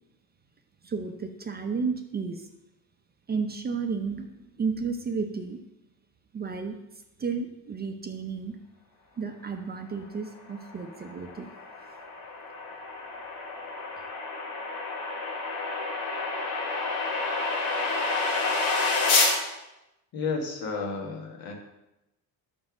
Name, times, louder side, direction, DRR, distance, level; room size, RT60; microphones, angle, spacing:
voice 1, 0.8-2.5 3.3-5.6 6.3-6.7 7.2-8.6 9.2-11.5, right 5 dB, 25° right, 5 dB, 0.6 m, -32 dB
sound 1, 10.7-19.4, left 3 dB, 85° left, 1.4 m, -29 dB
voice 2, 20.1-21.5, left 4 dB, 65° left, 2 dB, 1.5 m, -32 dB
5.4 x 4.3 x 5.9 m, 0.92 s
cardioid pair, 110°, 38 cm